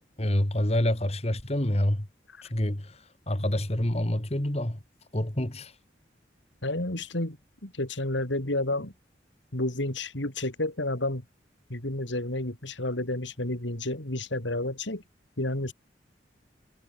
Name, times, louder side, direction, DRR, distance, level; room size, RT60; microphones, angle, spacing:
voice 1, 0.2-2.1 2.4-4.8 5.1-5.7, left 1 dB, 35° left, 2.2 m, -27 dB
voice 2, 6.6-7.4 7.6-8.9 9.5-11.2 11.7-15.0 15.4-15.7, left 1 dB, 90° left, 4.0 m, -30 dB
head